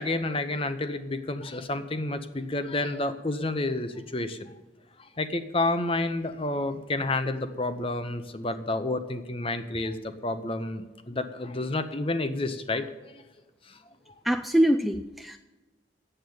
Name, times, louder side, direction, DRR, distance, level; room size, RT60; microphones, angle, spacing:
voice 1, 0.0-4.5 5.0-13.2 13.7-13.8, left 2 dB, 30° left, 10 dB, 0.8 m, -30 dB
voice 2, 14.3-15.4, right 1 dB, ahead, 7 dB, 0.3 m, -24 dB
8.9 x 8.0 x 9.3 m, 1.2 s
head